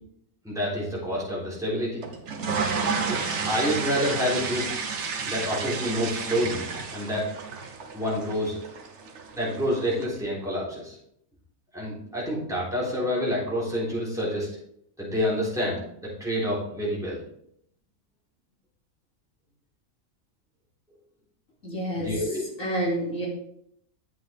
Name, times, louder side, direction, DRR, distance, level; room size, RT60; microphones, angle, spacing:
voice 1, 0.4-2.0 3.0-3.2 3.5-4.7 5.2-7.3 7.9-8.6 9.3-11.0 11.7-14.5 15.0-17.2 22.0-22.4, equal, ahead, -7 dB, 3.7 m, -28 dB
sound 1, 2.0-10.1, right 5 dB, 55° right, 1.2 m, -31 dB
voice 2, 21.6-22.1 22.6-23.3, right 1 dB, 70° left, -3 dB, 3.1 m, -28 dB
9.2 x 7.6 x 3.5 m, 0.72 s
omnidirectional pair, 1.5 m